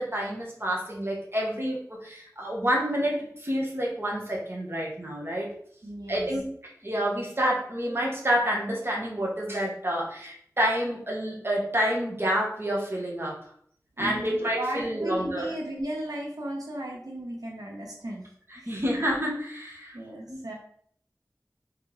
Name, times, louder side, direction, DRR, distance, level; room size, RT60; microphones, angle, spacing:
voice 1, 0.0-5.5 6.1-6.5 6.8-13.3 14.0-15.5 18.7-19.9 20.3-20.4, equal, 40° right, -3 dB, 1.2 m, -28 dB
voice 2, 5.8-6.3 14.0-18.2 18.5-18.8 19.9-20.5, right 1 dB, 85° right, -2 dB, 0.8 m, -35 dB
3.5 x 3.2 x 3.1 m, 0.63 s
wide cardioid pair, 45°, 6 cm